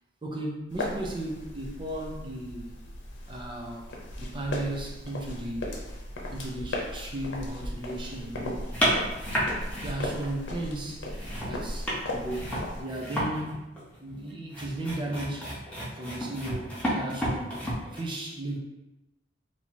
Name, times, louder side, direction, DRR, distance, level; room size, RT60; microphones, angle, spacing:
voice 1, 0.2-2.8 3.3-3.9 4.2-5.7 6.3-8.7 9.8-11.1 11.4-15.6 16.0-18.6, right 1 dB, 25° right, -1 dB, 0.6 m, -35 dB
sound 1, 0.7-12.8, left 1 dB, 90° left, 0.8 m, -37 dB
sound 2, 8.7-10.5 10.9-18.0, equal, 5° left, 0.9 m, -31 dB
2.9 x 2.9 x 4.3 m, 0.99 s
head